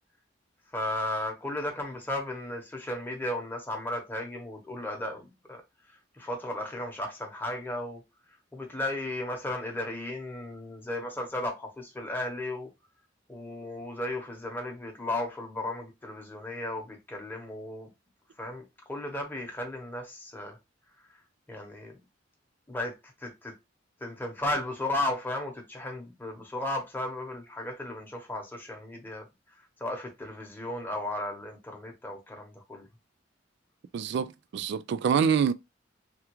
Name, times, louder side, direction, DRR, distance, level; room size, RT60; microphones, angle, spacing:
voice 1, 0.7-5.6 6.2-8.0 8.5-12.7 13.3-17.9 18.4-20.6 21.5-22.0 22.7-22.9 23.2-23.5 24.0-29.3 29.8-32.9, left 1 dB, 10° left, 0.8 m, -35 dB
voice 2, 33.9-35.5, right 7 dB, 65° right, 0.3 m, -26 dB
3.4 x 2.3 x 2.9 m
head